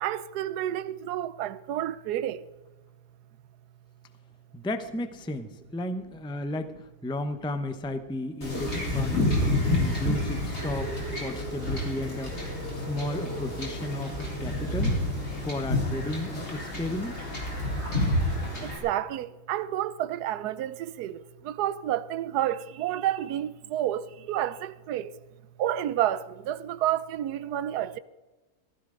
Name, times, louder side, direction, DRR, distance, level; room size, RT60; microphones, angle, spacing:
voice 1, 0.0-2.4 18.8-21.2 21.5-25.1 25.6-28.0, right 12 dB, 85° right, 1.2 m, -30 dB
voice 2, 4.5-9.4 9.7-12.4 12.7-15.0 15.4-17.3, left 1 dB, 5° left, 0.5 m, -34 dB
Wind / Ocean / Boat Water vehicle, 8.4-18.8, left 1 dB, 45° left, 4.1 m, -29 dB
15.5 x 15.0 x 3.8 m
omnidirectional pair, 1.7 m